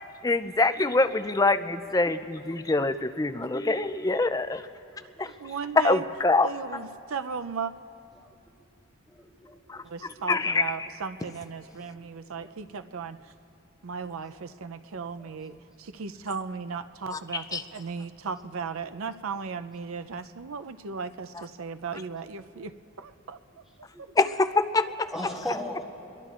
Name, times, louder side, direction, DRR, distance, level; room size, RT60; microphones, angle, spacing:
voice 1, 0.2-4.7 5.2-5.3 5.8-6.5 9.7-9.8 10.3-10.7 17.1-17.6 24.2-25.1, left 3 dB, 15° left, 9 dB, 0.4 m, -25 dB
voice 2, 3.8-4.2 5.0-6.1 6.4-7.7 9.8-13.3 13.8-23.4, right 5 dB, 80° right, 10 dB, 0.5 m, -36 dB
voice 3, 4.9-5.4 8.1-8.4 9.1-10.4 11.9-12.1 12.3-12.6 14.0-14.2 15.1-15.4 22.4-22.6 23.9-24.1 25.1-25.9, left 1 dB, ahead, -3 dB, 2.3 m, -40 dB
25.5 x 22.0 x 2.5 m, 2.7 s
head